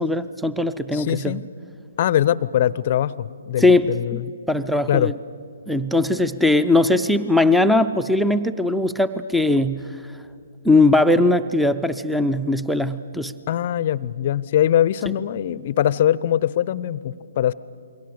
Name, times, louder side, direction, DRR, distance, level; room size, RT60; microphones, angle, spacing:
voice 1, 0.0-1.4 3.6-4.2 4.5-5.1 5.7-9.9 10.6-13.3, left 2 dB, ahead, 13 dB, 0.5 m, -19 dB
voice 2, 0.9-1.5 2.0-4.3 4.9-5.1 13.5-17.5, left 11 dB, 45° left, 20 dB, 0.6 m, -22 dB
28.5 x 22.5 x 6.7 m, 2.3 s
figure-of-eight pair, 130°, 0 cm